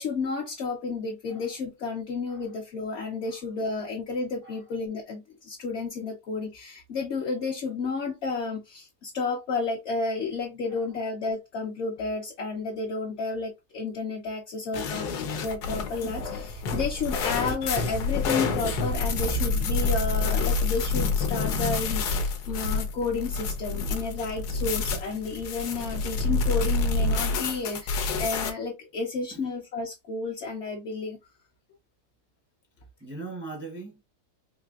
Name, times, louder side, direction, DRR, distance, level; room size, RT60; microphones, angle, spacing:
voice 1, 0.0-15.1 15.4-31.2, left 4 dB, 55° left, 0.8 m, -31 dB
voice 2, 2.2-2.6 3.2-3.5 4.4-4.7 10.7-11.1 29.3-29.5 33.0-34.0, right 3 dB, 20° right, 0.3 m, -42 dB
sound 1, 14.7-28.5, left 3 dB, 85° left, 1.3 m, -28 dB
4.1 x 2.9 x 2.3 m
omnidirectional pair, 1.7 m